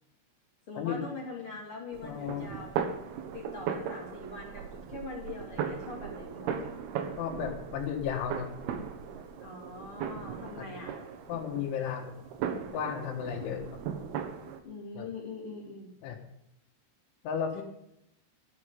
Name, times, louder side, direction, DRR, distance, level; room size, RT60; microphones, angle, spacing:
voice 1, 0.7-2.8 3.3-6.7 9.4-11.0 14.5-15.9, left 3 dB, 40° left, -1 dB, 2.3 m, -43 dB
sound 1, 1.9-14.6, right 7 dB, 70° right, 2.8 m, -38 dB
voice 2, 2.0-2.5 7.2-8.5 10.6-10.7 11.3-12.1 12.7-13.6 14.9-15.1 16.0-16.2 17.2-17.6, left 8 dB, 85° left, 2 dB, 3.9 m, -34 dB
13.0 x 6.6 x 9.4 m, 0.80 s
omnidirectional pair, 5.3 m